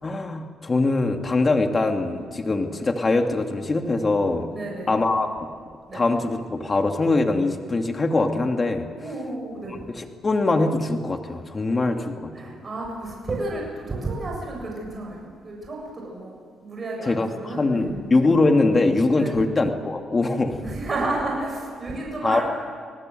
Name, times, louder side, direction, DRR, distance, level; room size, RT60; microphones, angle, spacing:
voice 1, 0.0-4.5 4.9-5.5 5.9-8.9 9.9-12.3 17.0-20.6 22.2-22.4, left 3 dB, 30° left, 5 dB, 2.6 m, -22 dB
voice 2, 4.5-5.0 5.9-6.0 9.0-9.8 12.3-16.4 16.6-18.0 19.2-19.3 20.5-22.4, right 2 dB, 35° right, -1 dB, 7.5 m, -31 dB
29.0 x 19.0 x 8.0 m, 2.2 s
cardioid pair, 90°, 0 cm